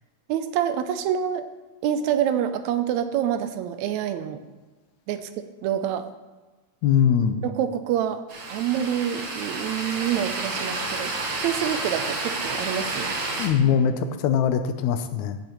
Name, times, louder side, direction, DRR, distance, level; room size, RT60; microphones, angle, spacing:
voice 1, 0.3-1.5 1.8-4.4 5.1-6.1 7.4-8.2 8.5-11.1 11.4-13.2, right 9 dB, 80° right, 10 dB, 1.9 m, -26 dB
voice 2, 6.8-7.5 13.4-15.4, left 8 dB, 85° left, 9 dB, 2.1 m, -22 dB
sound 1, 8.3-13.5, right 3 dB, 45° right, 1.3 m, -30 dB
15.0 x 7.1 x 3.1 m, 1.2 s
omnidirectional pair, 3.3 m